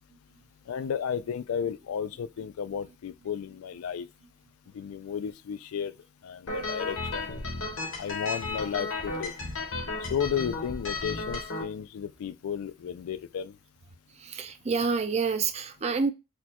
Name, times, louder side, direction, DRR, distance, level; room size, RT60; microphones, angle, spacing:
voice 1, 0.7-4.1 4.7-5.9 6.2-7.3 8.0-9.3 10.0-13.6, left 7 dB, 80° left, 0.3 m, -33 dB
sound 1, 6.5-11.6, left 3 dB, 65° left, 0.9 m, -34 dB
voice 2, 14.2-16.1, right 5 dB, 30° right, 0.4 m, -28 dB
4.2 x 2.3 x 2.8 m
head